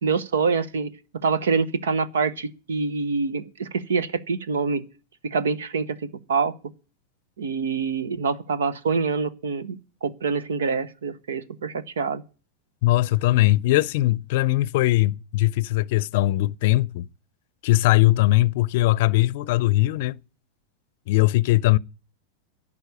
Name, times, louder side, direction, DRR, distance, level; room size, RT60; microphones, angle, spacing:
voice 1, 0.0-0.9 1.2-4.8 5.2-6.0 6.3-6.5 7.4-12.2, right 5 dB, 80° right, 1.0 m, -25 dB
voice 2, 12.8-17.1 17.6-20.2 21.1-21.8, left 17 dB, 60° left, 0.5 m, -20 dB
11.5 x 7.3 x 9.5 m
hypercardioid pair, 100°, 0 cm